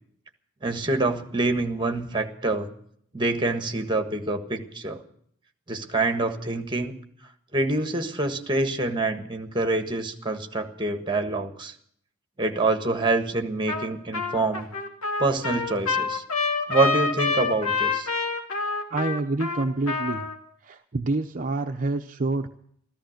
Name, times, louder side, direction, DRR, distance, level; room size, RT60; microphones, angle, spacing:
voice 1, 0.6-2.7 3.1-5.0 5.7-6.9 7.5-11.7 12.4-14.7 15.2-16.2 16.7-18.1, right 2 dB, 20° right, 6 dB, 1.5 m, -26 dB
Trumpet, 13.7-13.9 14.1-20.4, left 4 dB, 75° left, 2.5 m, -27 dB
voice 2, 18.9-20.3 20.6-22.5, right 2 dB, 40° right, 5 dB, 0.7 m, -27 dB
14.0 x 14.0 x 6.5 m, 0.65 s
head